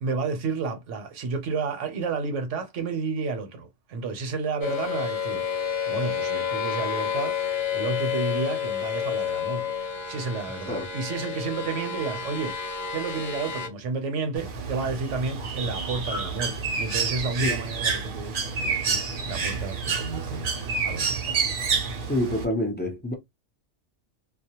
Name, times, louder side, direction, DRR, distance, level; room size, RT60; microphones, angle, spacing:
voice 1, 0.0-7.3 7.7-9.7 10.1-12.6 12.9-20.5 20.8-21.4, right 4 dB, 75° right, 1.0 m, -31 dB
sound 1, 4.6-13.7, left 7 dB, 60° left, 0.8 m, -30 dB
Bird, 14.4-22.5, right 5 dB, 55° right, 0.7 m, -29 dB
voice 2, 22.1-23.1, left 1 dB, 15° left, 0.3 m, -27 dB
2.3 x 2.0 x 2.8 m
omnidirectional pair, 1.3 m